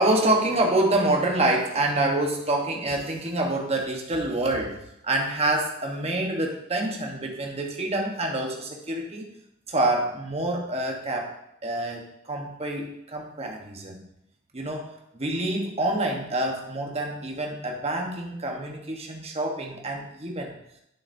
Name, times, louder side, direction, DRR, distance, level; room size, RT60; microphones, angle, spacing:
voice 1, 0.0-4.8 5.0-9.3 9.7-11.3 11.6-14.0 14.5-20.5, right 1 dB, 30° right, 1 dB, 1.1 m, -27 dB
9.3 x 6.9 x 2.7 m, 0.80 s
head